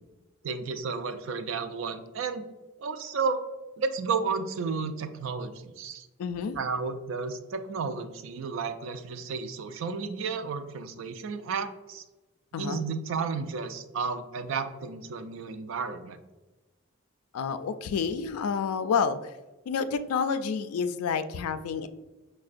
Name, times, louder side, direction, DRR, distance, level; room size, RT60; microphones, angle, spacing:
voice 1, 0.4-2.4 2.8-3.4 3.8-6.1 6.6-12.0 12.6-16.2, right 5 dB, 65° right, 9 dB, 0.3 m, -32 dB
voice 2, 6.2-6.6 12.5-12.8 17.3-19.3 19.7-21.9, left 6 dB, 90° left, 11 dB, 0.3 m, -29 dB
5.6 x 2.1 x 2.5 m, 1.1 s
head